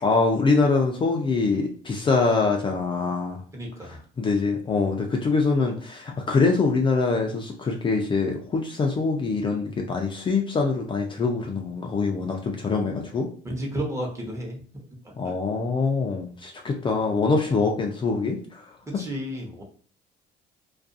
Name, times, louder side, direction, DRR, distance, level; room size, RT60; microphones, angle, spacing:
voice 1, 0.0-3.4 4.2-13.3 15.2-18.6, left 4 dB, 30° left, 1 dB, 0.4 m, -24 dB
voice 2, 3.5-4.0 13.4-14.9 15.2-15.3 18.9-19.6, equal, 15° right, -1 dB, 0.8 m, -32 dB
2.4 x 2.2 x 2.6 m, 0.43 s
cardioid pair, 110°, 17 cm